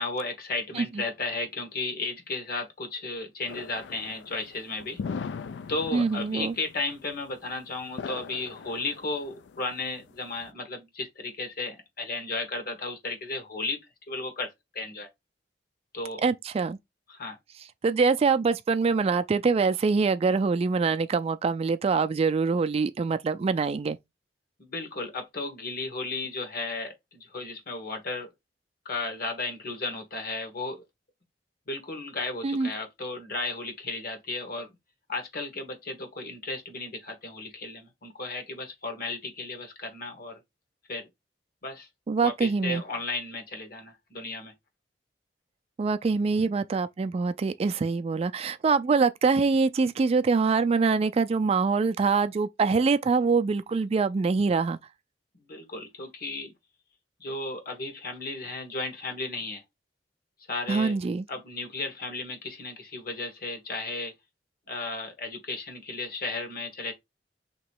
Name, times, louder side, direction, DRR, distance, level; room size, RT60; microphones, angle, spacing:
voice 1, 0.0-5.0 5.7-13.8 14.1-15.1 15.9-16.2 17.1-17.4 24.6-28.3 28.8-30.8 31.7-34.7 35.1-40.4 40.9-41.1 41.6-41.9 42.2-44.5 55.3-56.5 57.2-59.6 60.5-61.0 61.3-64.1 64.7-66.9, left 3 dB, 60° left, 1.2 m, -34 dB
sound 1, 3.5-10.5, left 5 dB, 90° left, 0.4 m, -40 dB
voice 2, 5.9-6.5 16.2-16.8 17.8-24.0 32.4-32.7 42.1-42.8 45.8-54.8 60.7-61.2, right 4 dB, 35° right, 0.3 m, -24 dB
3.1 x 2.9 x 4.5 m
head